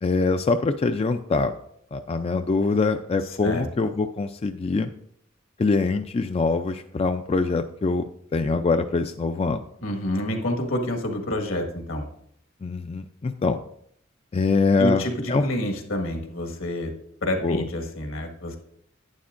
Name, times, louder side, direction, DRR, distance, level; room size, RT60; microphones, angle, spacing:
voice 1, 0.0-1.5 1.9-4.9 5.6-9.6 12.6-13.6 14.3-15.0 15.3-15.4 17.4-17.7, left 3 dB, 30° left, 8 dB, 0.3 m, -24 dB
voice 2, 9.8-12.1 14.8-16.9 17.2-18.6, left 1 dB, 75° left, 3 dB, 1.7 m, -28 dB
11.5 x 9.4 x 2.5 m, 0.68 s
head